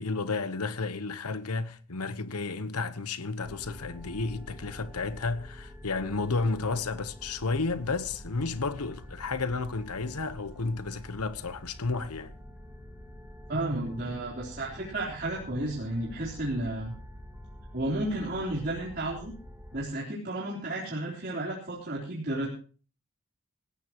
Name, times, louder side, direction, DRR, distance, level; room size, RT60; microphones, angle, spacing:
voice 1, 0.0-12.3, left 3 dB, 85° left, 1.1 m, -32 dB
sound 1, 3.4-19.9, left 1 dB, 5° right, 2.2 m, -47 dB
voice 2, 13.5-16.9 17.7-19.3 19.7-22.5, right 1 dB, 45° right, 3.8 m, -32 dB
18.5 x 16.5 x 3.1 m
head